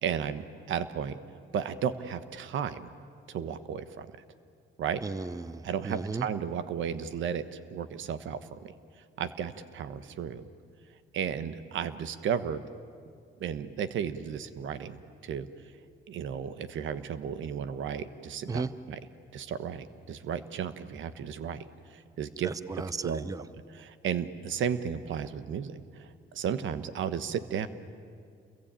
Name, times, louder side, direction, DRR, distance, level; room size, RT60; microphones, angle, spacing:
voice 1, 0.0-1.2 1.5-2.8 3.3-4.1 4.8-5.0 5.6-7.4 7.7-8.7 9.2-10.4 11.1-12.6 13.4-15.5 16.1-19.0 19.3-21.6 21.9-22.5 23.0-23.3 23.7-27.7, right 8 dB, 75° right, 12 dB, 1.3 m, -34 dB
voice 2, 5.0-6.3 18.5-18.7 22.4-23.4, right 4 dB, 15° right, 15 dB, 0.7 m, -35 dB
28.5 x 22.5 x 9.0 m, 2.2 s
cardioid pair, 90°, 20 cm